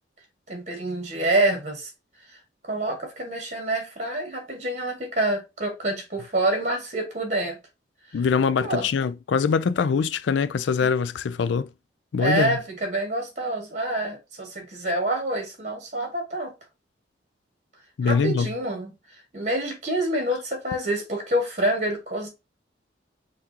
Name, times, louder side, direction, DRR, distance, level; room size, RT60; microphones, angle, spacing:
voice 1, 0.5-1.9 2.6-7.6 8.1-8.2 8.6-8.9 12.2-16.5 18.0-22.3, right 1 dB, 40° right, 1.7 m, -27 dB
voice 2, 8.1-11.7 12.1-12.6 18.0-18.5, left 6 dB, 75° left, 0.4 m, -23 dB
5.7 x 2.6 x 2.9 m
head